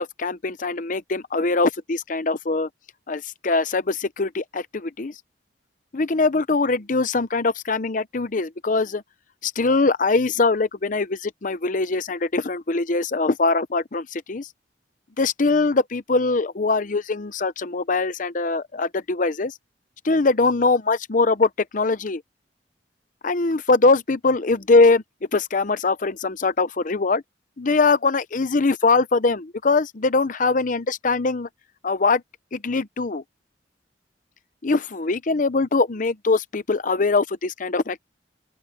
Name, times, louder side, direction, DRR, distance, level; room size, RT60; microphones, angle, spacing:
voice 1, 0.0-2.7 3.1-5.2 5.9-9.0 9.4-14.5 15.2-19.5 20.0-22.2 23.2-25.0 25.3-27.2 27.6-31.5 31.8-32.2 32.5-33.2 34.6-38.0, left 3 dB, 45° left, 0.7 m, -22 dB
open air
head